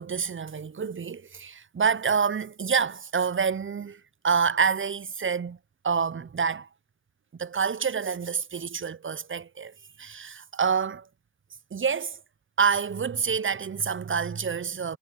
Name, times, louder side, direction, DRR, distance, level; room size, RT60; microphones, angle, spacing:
voice 1, 0.0-5.6 5.8-6.7 7.4-11.1 11.7-12.2 12.6-15.0, right 6 dB, 30° right, 0.4 m, -27 dB
wide cardioid pair, 55°, 41 cm